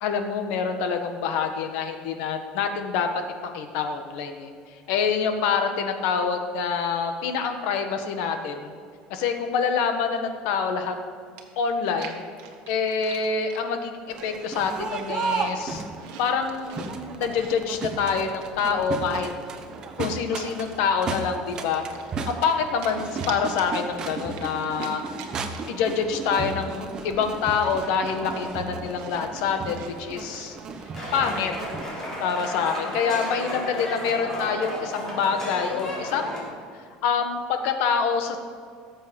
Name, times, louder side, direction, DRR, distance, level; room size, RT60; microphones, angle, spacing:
voice 1, 0.0-3.1 3.5-4.5 4.9-8.7 9.1-10.9 11.6-12.2 12.7-13.9 14.2-15.8 16.2-19.3 20.0-21.8 22.3-25.1 25.7-30.6 31.1-31.5 32.2-38.4, left 6 dB, 70° left, 6 dB, 1.4 m, -26 dB
Chewing mastication, 11.4-13.6 14.2-14.5 14.9-16.9 17.3-19.4 19.9-20.8 21.2-22.6 22.8-25.8 26.1-26.2 26.5-30.5, right 8 dB, 70° right, 1.5 m, -45 dB
Crowd, 14.1-31.8, right 4 dB, 25° right, 1.0 m, -34 dB
sound 1, 30.9-36.4, equal, 15° left, 3.5 m, -33 dB
17.5 x 7.7 x 5.3 m, 2.1 s
cardioid pair, 165°, 3 cm